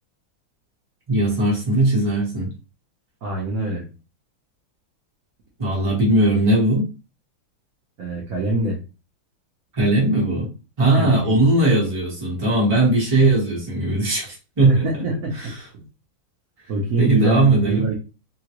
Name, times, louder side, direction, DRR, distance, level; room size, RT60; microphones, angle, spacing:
voice 1, 1.1-2.5 5.6-6.9 9.7-10.5 10.8-14.8 15.4-15.5 17.0-17.9, right 2 dB, 25° right, -4 dB, 0.7 m, -19 dB
voice 2, 3.2-3.9 8.0-8.8 11.0-11.4 14.7-15.8 16.7-18.0, right 2 dB, 70° right, -2 dB, 0.8 m, -25 dB
3.7 x 2.2 x 2.9 m, 0.32 s
omnidirectional pair, 2.4 m